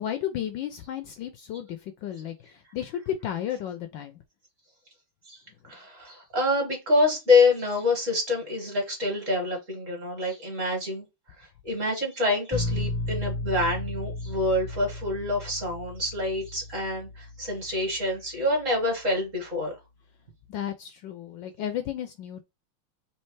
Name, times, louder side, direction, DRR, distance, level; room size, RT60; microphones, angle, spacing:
voice 1, 0.0-4.2 20.5-22.4, left 10 dB, 75° left, 1.2 m, -33 dB
voice 2, 5.7-11.1 11.4-19.8, left 2 dB, 40° right, 2.1 m, -26 dB
sound 1, 12.5-18.3, left 2 dB, ahead, 0.7 m, -34 dB
4.4 x 3.1 x 3.1 m
omnidirectional pair, 2.3 m